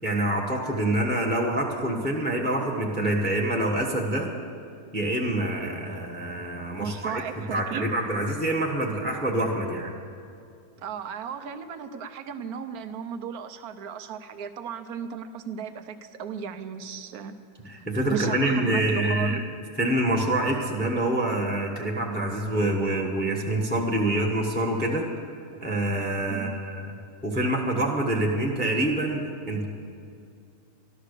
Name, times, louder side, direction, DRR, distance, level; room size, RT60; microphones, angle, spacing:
voice 1, 0.0-4.3 4.9-7.2 7.5-9.9 17.6-19.4 19.8-25.1 25.6-26.8 27.2-29.6, right 1 dB, 5° left, 1 dB, 1.2 m, -26 dB
voice 2, 6.8-7.9 10.8-17.3 18.1-19.4 26.3-26.5, right 7 dB, 75° right, 9 dB, 1.2 m, -35 dB
12.5 x 12.5 x 6.7 m, 2.4 s
omnidirectional pair, 1.6 m